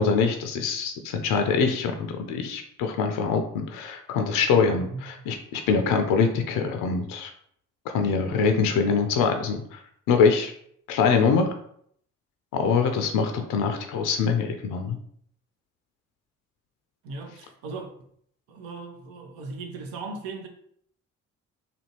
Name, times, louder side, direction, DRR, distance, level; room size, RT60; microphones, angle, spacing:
voice 1, 0.0-7.3 7.9-9.8 10.1-10.5 10.9-11.5 12.5-15.0, left 5 dB, 55° left, 0.5 m, -24 dB
voice 2, 17.0-17.9 18.5-20.5, right 3 dB, 65° right, 0.7 m, -37 dB
2.7 x 2.6 x 2.8 m
hypercardioid pair, 45°, 38 cm